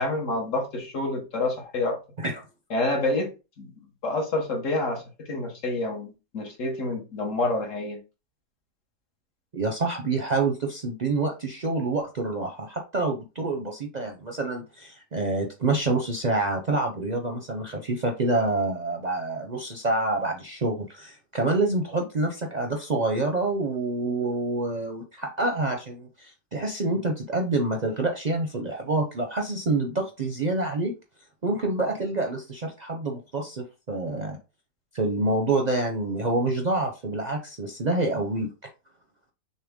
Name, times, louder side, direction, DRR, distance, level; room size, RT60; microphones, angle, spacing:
voice 1, 0.0-2.0 2.7-3.3 3.6-3.7 4.0-8.0, left 2 dB, 65° left, 1.5 m, -28 dB
voice 2, 9.5-30.9 31.4-34.4 34.9-38.5, right 2 dB, 45° right, 0.6 m, -27 dB
6.6 x 2.2 x 3.6 m
omnidirectional pair, 1.4 m